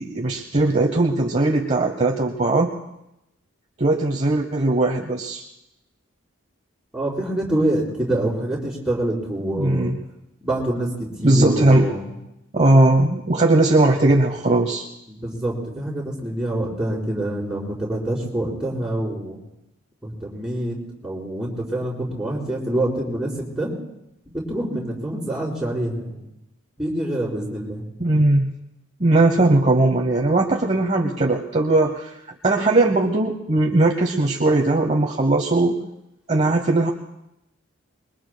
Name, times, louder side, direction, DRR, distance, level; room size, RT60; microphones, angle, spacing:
voice 1, 0.0-2.7 3.8-5.4 9.5-10.0 11.2-11.9 12.5-14.9 28.0-28.5 29.0-35.8 36.3-36.9, right 2 dB, 30° right, 2 dB, 0.9 m, -19 dB
voice 2, 6.9-9.9 10.4-12.1 15.1-19.4 20.0-20.8 21.0-23.7 24.3-26.2 26.8-27.8, right 1 dB, 5° right, -6 dB, 4.4 m, -26 dB
25.5 x 22.5 x 2.2 m, 0.89 s
head